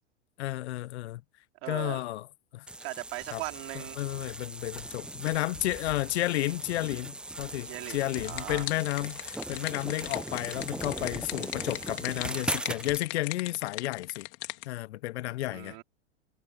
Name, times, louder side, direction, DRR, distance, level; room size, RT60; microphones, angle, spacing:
voice 1, 0.4-1.2 1.7-2.3 2.5-2.6 3.3-3.4 4.0-14.3 14.6-15.8, left 17 dB, 70° left, 0.5 m, -32 dB
voice 2, 1.6-2.0 2.8-4.0 7.6-8.7 15.5-15.8, right 26 dB, 55° right, 4.0 m, -39 dB
sound 1, 2.7-13.1, right 2 dB, 5° right, 0.4 m, -39 dB
sound 2, 7.8-14.7, left 27 dB, 50° left, 2.9 m, -39 dB
hypercardioid pair, 105°, 35 cm